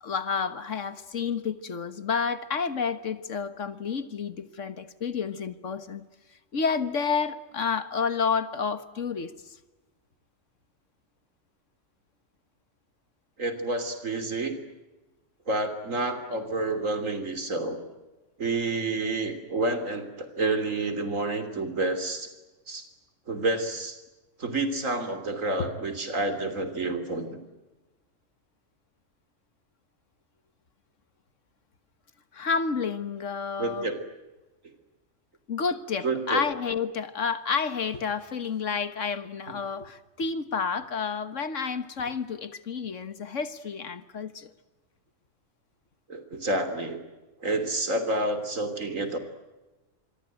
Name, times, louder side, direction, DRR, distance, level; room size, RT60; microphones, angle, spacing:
voice 1, 0.0-6.1 6.5-9.6 25.6-25.7 32.3-33.9 35.5-44.5, left 5 dB, 70° left, 1.8 m, -30 dB
voice 2, 13.4-14.6 15.5-17.8 18.4-22.3 22.7-22.9 23.3-24.0 24.4-27.4 33.6-34.0 36.0-36.4 46.1-47.0 47.4-49.2, right 2 dB, 80° right, 3.5 m, -29 dB
27.0 x 23.0 x 9.2 m
omnidirectional pair, 1.4 m